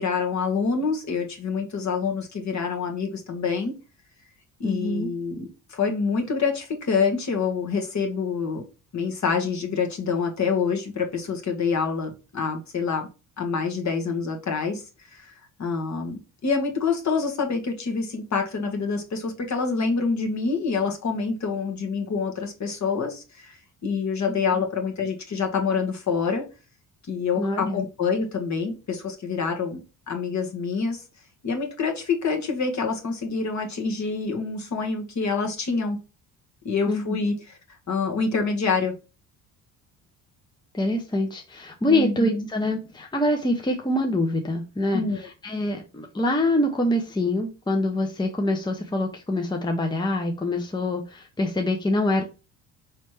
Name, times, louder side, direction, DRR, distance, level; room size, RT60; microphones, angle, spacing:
voice 1, 0.0-3.7 4.6-8.6 8.9-13.1 13.4-14.8 15.1-15.3 15.6-26.4 27.1-31.0 31.4-36.0 36.6-37.3 37.9-39.0 41.9-42.5 44.9-45.3, left 5 dB, 45° left, 3 dB, 1.6 m, -26 dB
voice 2, 4.6-5.1 24.5-24.6 27.4-27.8 36.9-37.2 40.7-52.2, left 1 dB, 10° left, 3 dB, 0.9 m, -25 dB
4.3 x 3.3 x 3.2 m, 0.30 s
supercardioid pair, 80°, 39 cm